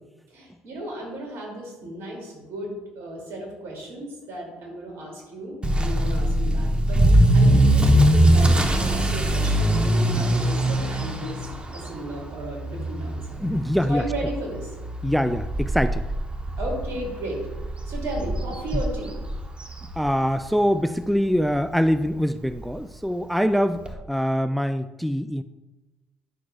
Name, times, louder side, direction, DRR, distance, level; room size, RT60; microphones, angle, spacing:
voice 1, 0.3-11.4 11.7-13.4 13.9-14.7 16.6-17.4 17.8-19.1, right 1 dB, 65° right, -1 dB, 2.6 m, -34 dB
Motor vehicle (road) / Accelerating revving vroom, 5.6-20.5 20.8-21.2 21.7-21.8 22.1-22.2 22.5-22.6 23.9-24.0, right 1 dB, 20° right, 1.0 m, -22 dB
voice 2, 13.4-14.0 15.0-16.0 18.7-18.8 20.0-23.8 24.1-25.4, equal, ahead, 11 dB, 0.3 m, -24 dB
9.9 x 6.4 x 2.4 m, 1.1 s
hypercardioid pair, 60°, 5 cm